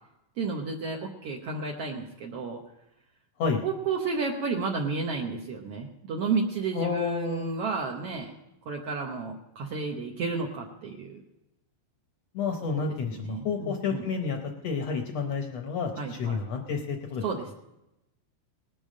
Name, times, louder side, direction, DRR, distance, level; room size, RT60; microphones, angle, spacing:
voice 1, 0.4-2.6 3.6-8.3 8.6-11.2 12.8-14.0 16.0-16.4 17.2-17.5, right 4 dB, 80° right, 0 dB, 1.3 m, -32 dB
voice 2, 6.7-7.5 12.3-17.2, left 5 dB, 75° left, 3 dB, 1.5 m, -30 dB
19.5 x 7.0 x 6.3 m, 0.91 s
omnidirectional pair, 4.2 m